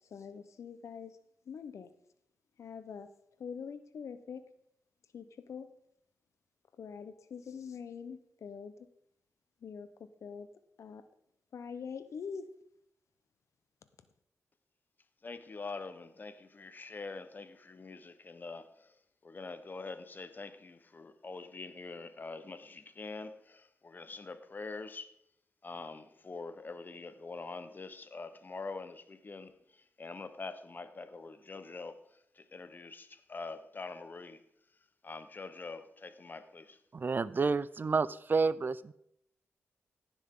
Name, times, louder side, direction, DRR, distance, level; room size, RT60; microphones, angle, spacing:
voice 1, 0.1-1.2 1.5-1.9 2.6-3.1 3.4-4.5 5.1-5.7 6.8-8.9 9.6-10.5 10.8-11.0 11.5-12.5, left 6 dB, 75° left, 0.8 m, -44 dB
voice 2, 15.2-19.0 19.2-25.1 25.6-34.4 35.0-36.8, left 3 dB, 40° left, 1.0 m, -45 dB
voice 3, 36.9-38.9, right 4 dB, 40° right, 0.4 m, -30 dB
16.0 x 7.2 x 3.7 m
cardioid pair, 80°, 5 cm